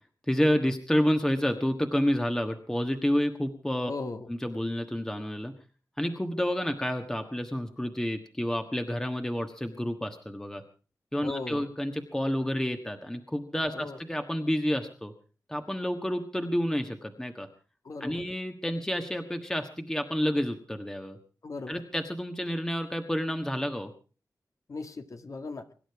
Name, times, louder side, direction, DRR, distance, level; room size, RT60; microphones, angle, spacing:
voice 1, 0.3-3.9 4.3-5.5 6.0-10.6 11.1-15.1 15.5-17.5 18.0-21.2 21.7-23.9, equal, 10° left, 5 dB, 1.4 m, -29 dB
voice 2, 3.9-4.3 11.2-11.7 13.7-14.0 17.8-18.2 21.4-21.8 24.7-25.6, left 3 dB, 55° left, 6 dB, 1.8 m, -37 dB
24.5 x 11.5 x 4.7 m, 0.38 s
wide cardioid pair, 115°, 7 cm